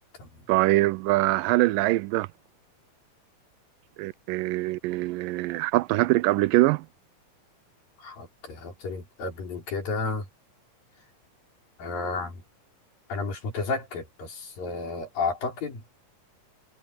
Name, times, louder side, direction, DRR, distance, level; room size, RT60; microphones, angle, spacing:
voice 1, 0.5-2.3 4.0-6.9, right 19 dB, 85° right, 2.2 m, -23 dB
voice 2, 8.0-10.2 11.8-12.4 13.1-15.8, left 3 dB, 85° left, 6.7 m, -32 dB
omnidirectional pair, 3.9 m